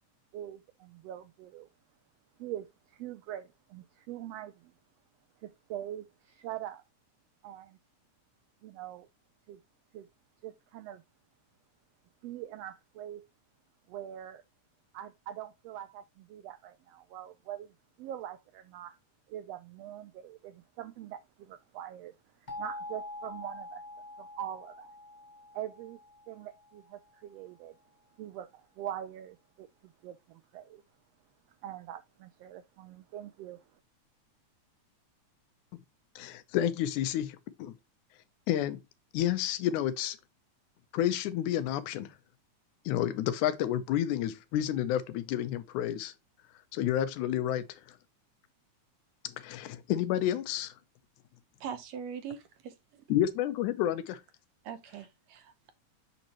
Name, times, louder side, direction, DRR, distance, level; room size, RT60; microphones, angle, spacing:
voice 1, 0.3-1.7 2.4-4.7 5.4-6.8 7.4-7.8 8.6-9.1 9.5-9.6 9.9-10.1 10.4-11.0 12.2-13.2 13.9-14.4 14.9-17.7 18.0-19.0 19.3-22.1 22.6-23.8 24.2-24.9 25.5-26.0 26.3-27.8 28.2-29.7 30.0-30.8 31.6-33.6, right 11 dB, 90° right, 1.4 m, -43 dB
sound 1, 22.5-27.2, left 2 dB, 60° left, 0.4 m, -45 dB
voice 2, 36.2-37.7 38.5-38.8 39.1-40.2 40.9-42.1 42.9-46.1 46.7-47.7 49.4-50.7 53.1-54.2, left 11 dB, 85° left, 2.2 m, -30 dB
voice 3, 51.6-53.0 54.6-55.7, right 7 dB, 70° right, 1.9 m, -42 dB
7.2 x 5.4 x 2.9 m
omnidirectional pair, 3.4 m